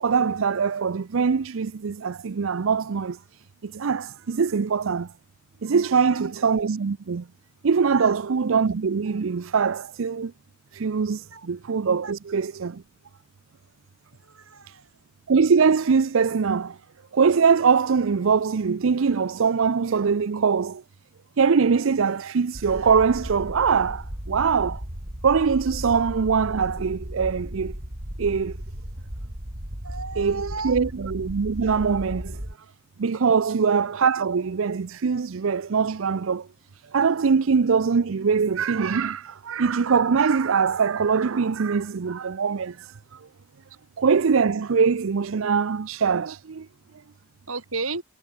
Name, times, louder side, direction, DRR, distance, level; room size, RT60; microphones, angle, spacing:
voice 1, 0.0-3.2 3.6-5.1 5.6-7.3 7.6-10.3 10.7-12.8 14.7-14.8 15.3-16.8 17.1-20.8 21.4-24.8 25.2-27.7 28.2-28.6 30.2-32.4 33.0-36.5 36.9-43.2 44.0-46.7, right 5 dB, 70° right, 0.5 m, -22 dB
voice 2, 14.3-14.8 29.8-30.8 47.5-48.0, right 4 dB, 90° right, 6.1 m, -34 dB
sound 1, 22.5-32.5, equal, 45° right, 4.6 m, -35 dB
head